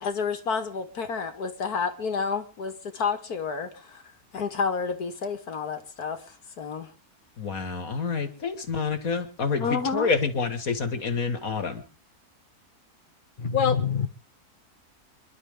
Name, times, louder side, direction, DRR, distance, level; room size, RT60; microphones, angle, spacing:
voice 1, 0.0-3.7 4.3-6.2 6.6-6.9 9.6-10.1, left 5 dB, 85° left, 2.4 m, -29 dB
voice 2, 7.4-11.8, left 5 dB, 65° left, 2.5 m, -28 dB
voice 3, 13.4-14.1, left 7 dB, 35° left, 1.5 m, -24 dB
28.0 x 11.5 x 3.8 m
omnidirectional pair, 1.6 m